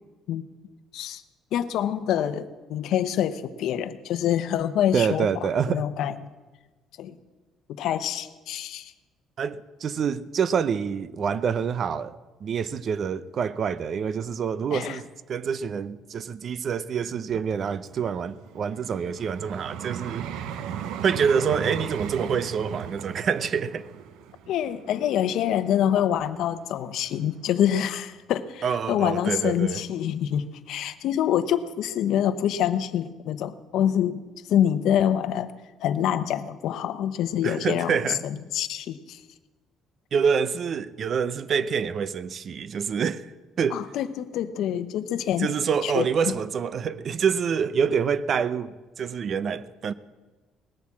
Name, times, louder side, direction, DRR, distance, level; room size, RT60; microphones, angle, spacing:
voice 1, 1.5-5.3 5.7-6.1 7.0-7.1 7.8-8.9 14.7-15.0 24.5-34.2 34.5-35.5 35.8-37.9 38.2-39.2 43.7-45.6 45.8-46.1, left 10 dB, 70° left, 0.8 m, -26 dB
voice 2, 4.9-5.8 9.4-20.5 21.0-23.9 28.6-29.8 37.4-38.2 40.1-43.3 43.6-43.8 45.4-49.9, right 6 dB, 45° right, 0.6 m, -26 dB
Vehicle, 17.5-26.6 27.2-27.4, right 9 dB, 85° right, 0.8 m, -37 dB
19.0 x 8.3 x 7.4 m
cardioid pair, 135°, 0 cm